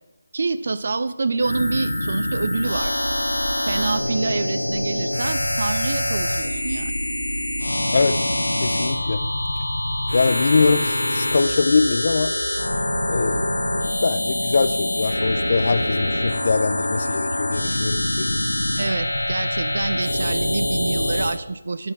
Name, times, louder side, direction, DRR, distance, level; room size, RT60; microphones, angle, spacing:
voice 1, 0.3-3.0 3.6-6.9 18.8-21.9, right 3 dB, 55° right, 14 dB, 0.6 m, -26 dB
sound 1, 1.4-21.4, left 1 dB, 90° left, 1.1 m, -24 dB
voice 2, 8.6-9.2 10.1-12.3 13.1-18.3, left 4 dB, 50° left, 12 dB, 0.5 m, -22 dB
9.7 x 6.5 x 5.9 m, 1.1 s
figure-of-eight pair, 160°, 0 cm